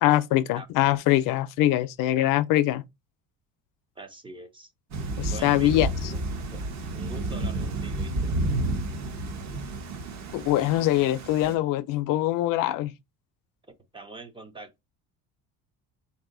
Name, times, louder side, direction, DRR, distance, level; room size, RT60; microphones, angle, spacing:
voice 1, 0.0-2.8 5.2-6.1 10.3-12.9, left 14 dB, 65° left, 0.5 m, -23 dB
voice 2, 4.0-4.7 5.3-6.2 6.5-6.6 6.9-8.3 13.9-14.7, right 2 dB, 15° right, 0.4 m, -43 dB
Thunder / Rain, 4.9-11.6, right 2 dB, 50° right, 1.0 m, -31 dB
3.6 x 2.7 x 3.7 m
cardioid pair, 150°, 36 cm